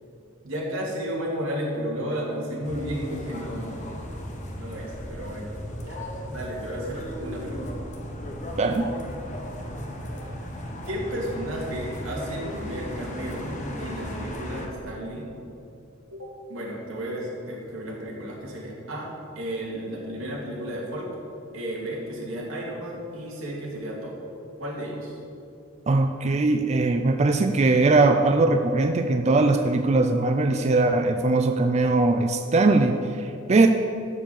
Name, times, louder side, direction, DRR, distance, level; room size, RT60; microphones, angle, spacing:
voice 1, 0.4-4.0 4.5-7.7 8.6-8.8 10.2-10.3 10.9-15.3 16.1-19.1 19.3-21.1 21.5-24.2 24.6-25.2, equal, 90° right, -3 dB, 2.6 m, -33 dB
sound 1, 2.6-14.7, equal, 40° left, 1.3 m, -36 dB
voice 2, 25.9-33.7, right 3 dB, 35° right, 6 dB, 0.4 m, -20 dB
12.5 x 4.9 x 7.2 m, 2.7 s
head